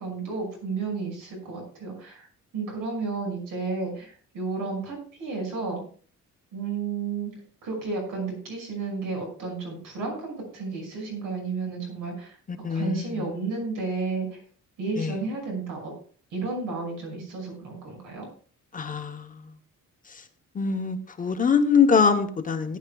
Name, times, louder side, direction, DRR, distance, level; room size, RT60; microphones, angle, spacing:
voice 1, 0.0-2.3 2.5-5.8 6.5-7.3 7.6-12.4 12.7-14.4 14.8-15.9 16.3-18.3, right 4 dB, 85° right, 1 dB, 6.0 m, -32 dB
voice 2, 12.5-13.3 15.0-15.2 18.7-19.4 20.1-20.2 20.5-22.8, left 5 dB, 25° left, 6 dB, 0.9 m, -24 dB
18.0 x 10.5 x 2.3 m, 0.44 s
cardioid pair, 175°, 31 cm